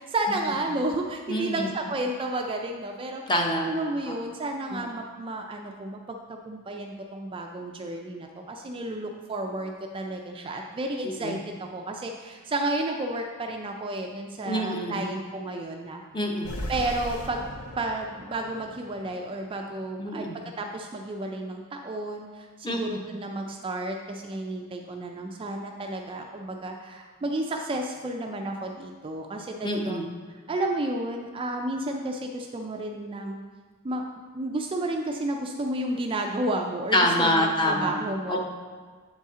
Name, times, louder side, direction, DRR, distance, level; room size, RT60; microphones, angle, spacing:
voice 1, 0.0-3.2 3.6-16.0 16.7-17.5 17.8-20.3 20.6-30.0 30.3-33.4 33.8-34.0 34.3-38.4, right 2 dB, 25° right, 2 dB, 0.3 m, -32 dB
voice 2, 1.3-1.7 3.3-3.7 4.0-4.1 4.7-4.8 11.0-11.4 14.5-15.0 16.1-16.5 20.0-20.4 22.6-22.8 29.6-30.1 36.9-38.0 38.3-38.4, left 1 dB, 20° left, 1 dB, 0.7 m, -26 dB
sound 1, 16.4-19.9, equal, 80° left, 0.8 m, -38 dB
8.0 x 4.1 x 3.6 m, 1.5 s
head